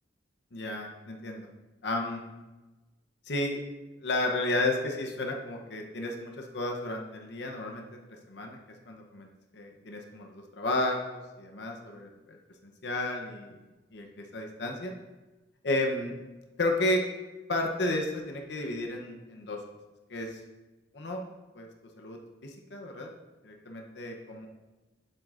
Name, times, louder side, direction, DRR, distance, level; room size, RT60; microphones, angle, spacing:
voice 1, 0.5-1.5 1.8-2.2 3.3-3.6 4.0-8.0 8.3-8.6 8.9-9.3 9.5-12.4 12.6-13.5 13.9-14.9 15.6-16.2 16.6-17.0 17.5-19.6 20.1-20.4 20.9-21.2 21.5-21.7 22.0-23.1 23.4-24.5, left 2 dB, 65° left, 2 dB, 0.8 m, -32 dB
7.8 x 7.3 x 2.5 m, 1.1 s
head